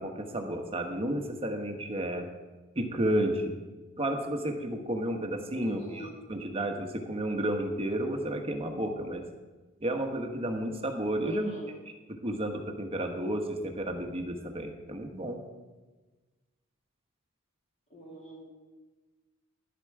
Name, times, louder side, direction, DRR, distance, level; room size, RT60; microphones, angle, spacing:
voice 1, 0.0-2.3 2.7-3.5 4.0-9.2 9.8-11.5 12.2-15.4, right 1 dB, 25° right, 4 dB, 1.2 m, -32 dB
voice 2, 5.5-6.2 11.2-11.7 17.9-18.4, equal, 35° left, -3 dB, 2.8 m, -43 dB
11.5 x 9.0 x 4.8 m, 1.2 s
head